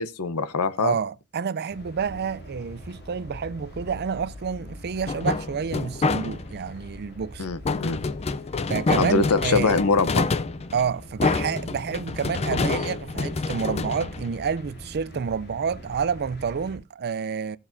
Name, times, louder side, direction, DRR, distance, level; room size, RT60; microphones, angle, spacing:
voice 1, 0.0-0.9 7.4-8.0 9.0-10.3, left 4 dB, 80° left, 0.8 m, -23 dB
voice 2, 0.8-7.5 8.7-9.8 10.7-17.6, right 6 dB, 45° right, 0.5 m, -29 dB
sound 1, 1.7-16.8, equal, 50° left, 2.6 m, -43 dB
sound 2, 5.1-6.6 7.7-14.8, left 3 dB, 30° left, 0.4 m, -27 dB
16.5 x 7.2 x 2.6 m
head